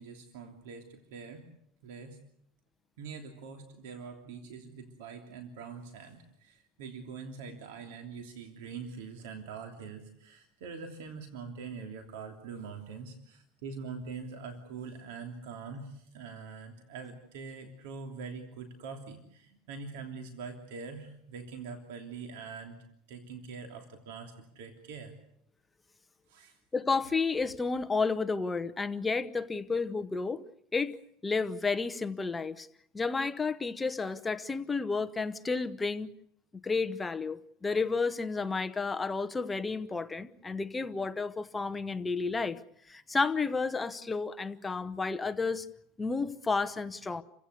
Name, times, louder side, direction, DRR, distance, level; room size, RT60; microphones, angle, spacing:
voice 1, 0.0-1.5 1.8-2.2 3.0-22.8 23.1-25.1 26.3-26.6, right 5 dB, 80° right, 3.1 m, -44 dB
voice 2, 26.7-30.4 30.7-31.0 31.2-32.7 32.9-36.1 36.6-42.6 42.9-45.7 46.0-47.2, left 4 dB, 15° left, 0.9 m, -31 dB
29.5 x 16.0 x 8.3 m
supercardioid pair, 140°, 0 cm